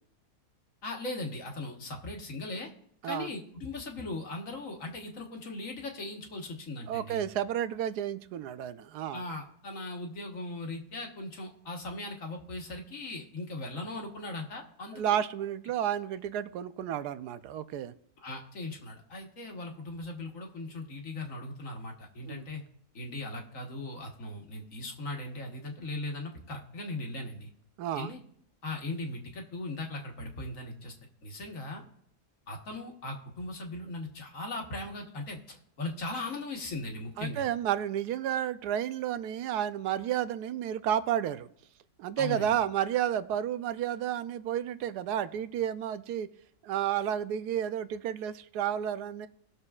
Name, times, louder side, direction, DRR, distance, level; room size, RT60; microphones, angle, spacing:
voice 1, 0.8-2.7 3.0-7.2 9.1-15.2 18.2-22.6 22.9-27.5 27.9-28.2 28.6-30.9 31.2-31.8 32.5-37.5 42.2-42.6, left 2 dB, 55° left, 2 dB, 1.7 m, -39 dB
voice 2, 6.9-9.2 14.9-17.9 22.3-22.4 27.8-28.1 37.2-41.5 42.0-46.3 46.6-49.3, right 10 dB, 80° right, 13 dB, 1.1 m, -31 dB
19.5 x 6.6 x 2.4 m, 0.70 s
omnidirectional pair, 1.7 m